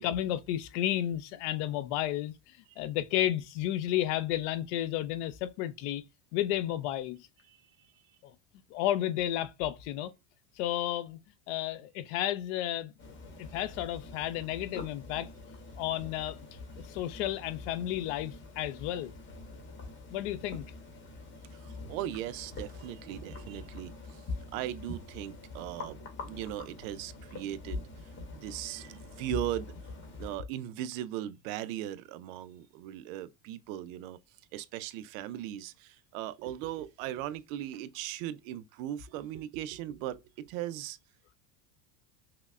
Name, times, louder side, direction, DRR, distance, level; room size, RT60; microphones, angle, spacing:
voice 1, 0.0-6.0 6.3-7.3 8.7-10.1 10.6-11.2 11.5-12.9 13.4-15.3 15.8-16.4 16.8-19.1 20.1-20.7, left 12 dB, 55° left, 0.5 m, -32 dB
voice 2, 7.5-7.9 21.5-24.3 24.5-29.7 30.2-34.2 34.5-41.0, right 12 dB, 70° right, 0.5 m, -38 dB
sound 1, 13.0-30.4, left 3 dB, 30° left, 0.9 m, -45 dB
5.6 x 2.1 x 2.4 m
cardioid pair, 170°, 41 cm